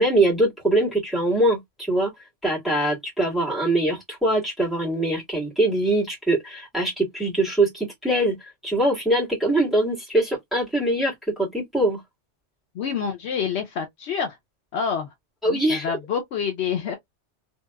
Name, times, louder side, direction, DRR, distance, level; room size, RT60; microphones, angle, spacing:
voice 1, 0.0-2.1 2.4-12.0 15.4-15.9, right 1 dB, ahead, 1.7 m, -23 dB
voice 2, 12.7-14.4 14.7-15.1 15.5-17.0, left 7 dB, 70° left, 0.8 m, -27 dB
2.8 x 2.8 x 2.2 m
omnidirectional pair, 1.2 m